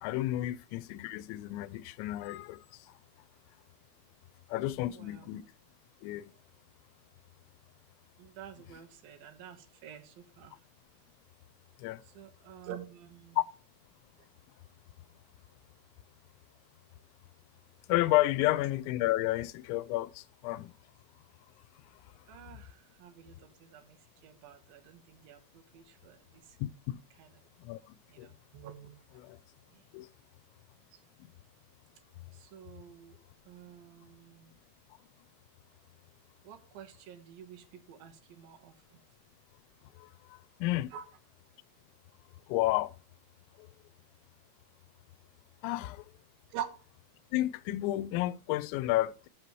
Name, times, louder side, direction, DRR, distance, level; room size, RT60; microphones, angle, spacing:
voice 1, 0.0-2.6 4.5-5.4 6.0-6.3 11.8-12.0 13.4-13.5 17.9-20.7 26.6-27.0 27.6-28.3 29.2-29.4 29.9-30.1 31.2-31.3 40.0-40.9 42.5-42.9 43.6-43.7 45.6-46.1 47.3-49.3, left 16 dB, 85° left, 2.9 m, -31 dB
voice 2, 4.9-5.4 8.2-10.5 12.0-13.4 22.3-26.6 27.2-27.3 28.1-28.9 29.7-29.8 30.9-31.0 32.3-33.2 33.5-34.5 36.4-39.0 40.9-41.0 46.5-46.7, right 10 dB, 70° right, 2.5 m, -48 dB
12.5 x 6.7 x 3.0 m
omnidirectional pair, 5.2 m